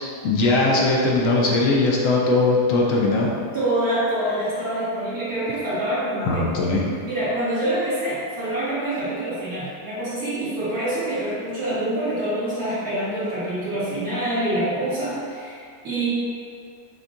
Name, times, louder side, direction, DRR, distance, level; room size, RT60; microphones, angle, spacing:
voice 1, 0.0-3.3 6.2-6.8, left 2 dB, 70° left, -3 dB, 0.8 m, -20 dB
voice 2, 3.5-6.5 7.0-16.1, right 1 dB, 65° right, -13 dB, 2.1 m, -26 dB
6.2 x 2.3 x 2.6 m, 2.3 s
omnidirectional pair, 1.8 m